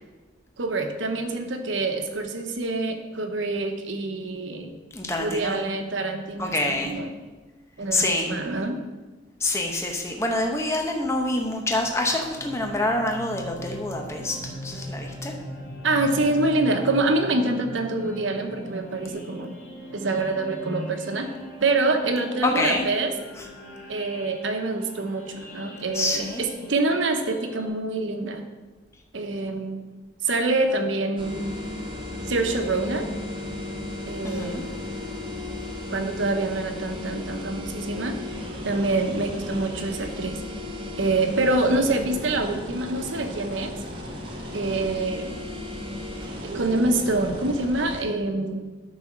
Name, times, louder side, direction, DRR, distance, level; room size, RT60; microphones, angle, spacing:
voice 1, 0.6-4.7 5.2-7.1 7.8-8.8 15.8-19.6 19.9-21.3 21.6-23.1 23.9-28.4 29.1-29.8 30.2-31.5 32.3-33.1 34.1-34.7 35.9-38.2 38.6-40.4 41.0-43.7 44.5-45.4 46.4-48.6, right 2 dB, 85° right, 6 dB, 0.9 m, -26 dB
voice 2, 4.9-5.6 6.4-7.0 7.9-8.3 9.4-15.3 22.4-22.9 23.4-23.5 25.9-26.4 34.2-34.6, left 2 dB, 15° left, 2 dB, 0.8 m, -26 dB
sound 1, 10.9-27.7, equal, 85° left, 2.6 m, -40 dB
sound 2, 31.2-48.0, left 1 dB, 25° right, 1.2 m, -35 dB
9.6 x 4.1 x 6.1 m, 1.3 s
head